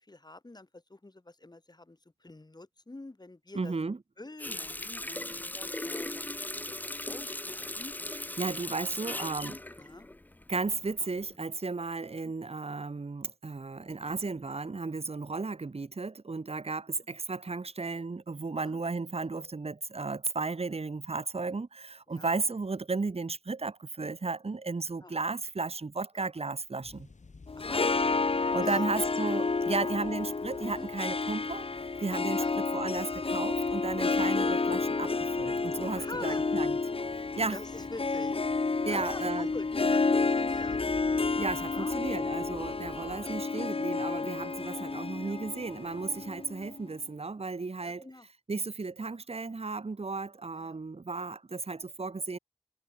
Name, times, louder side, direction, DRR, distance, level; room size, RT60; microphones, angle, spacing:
voice 1, 0.0-3.7 4.2-7.9 8.5-8.7 9.0-10.1 12.2-12.3 18.6-18.8 22.1-22.3 25.0-25.1 27.6-27.9 28.6-28.9 29.6-29.8 30.8-30.9 32.4-32.6 36.0-36.4 37.5-38.4 38.8-40.8 41.7-42.0 42.8-43.3 45.2-45.4 46.5-46.7 47.8-48.3 50.6-50.8, left 2 dB, 35° left, 3.7 m, -46 dB
voice 2, 3.5-4.0 8.4-9.6 10.5-27.1 28.5-36.8 37.1-37.6 38.8-39.5 41.4-48.1 48.5-52.4, right 3 dB, 55° right, 1.5 m, -34 dB
Water tap faucet, 4.4-10.8 11.2-11.3, left 1 dB, 15° left, 0.5 m, -38 dB
sound 1, 26.8-43.4, left 4 dB, 85° left, 7.0 m, -53 dB
Harp, 27.5-46.8, left 4 dB, 50° left, 0.9 m, -30 dB
wide cardioid pair, 80°, 12 cm